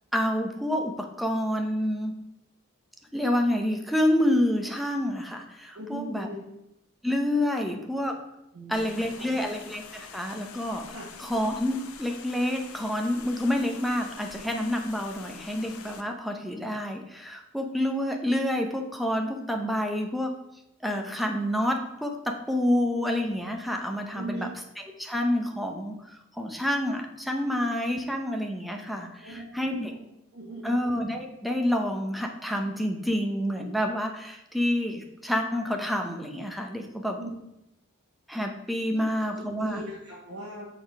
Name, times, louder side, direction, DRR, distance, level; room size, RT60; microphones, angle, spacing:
voice 1, 0.1-2.1 3.1-6.3 7.0-8.2 8.7-10.9 11.2-20.4 20.8-24.5 25.0-29.9 30.6-37.2 38.3-39.8, left 1 dB, ahead, 3 dB, 0.7 m, -28 dB
voice 2, 5.7-6.4 8.5-9.4 10.9-11.1 24.1-24.5 29.2-30.0 30.3-30.8 37.2-37.3 38.9-40.7, right 1 dB, 55° right, -7 dB, 1.6 m, -40 dB
sound 1, 8.7-16.0, left 6 dB, 70° left, 0.7 m, -46 dB
6.7 x 4.0 x 5.3 m, 0.88 s
head